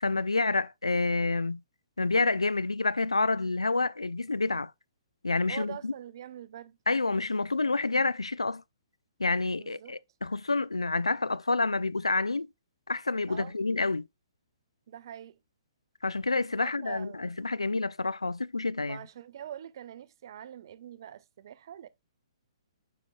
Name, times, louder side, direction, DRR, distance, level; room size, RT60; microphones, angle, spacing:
voice 1, 0.0-1.6 2.0-4.7 5.2-5.9 6.9-8.6 9.2-12.5 12.9-14.1 16.0-19.0, left 3 dB, 85° left, 0.4 m, -28 dB
voice 2, 5.5-6.8 9.6-10.0 13.3-13.5 14.9-15.4 16.6-17.3 18.8-21.9, right 10 dB, 50° right, 0.5 m, -44 dB
8.9 x 4.9 x 2.3 m
figure-of-eight pair, 125°, 3 cm